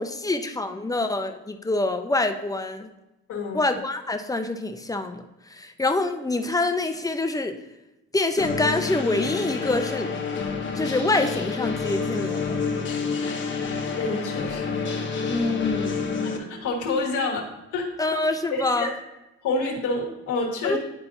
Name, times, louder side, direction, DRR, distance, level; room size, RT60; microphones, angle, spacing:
voice 1, 0.0-2.9 3.5-7.6 8.1-10.1 10.7-12.6 15.3-16.0 18.0-18.9 20.6-20.8, left 2 dB, 10° left, 6 dB, 0.6 m, -26 dB
voice 2, 3.3-3.6 14.0-15.3 16.2-17.5 17.7-17.9 18.5-18.9 19.4-20.8, left 3 dB, 85° left, 0 dB, 1.6 m, -28 dB
sound 1, 8.4-16.4, left 5 dB, 40° left, 1.0 m, -28 dB
11.0 x 4.2 x 2.7 m, 0.97 s
cardioid pair, 90°, 30 cm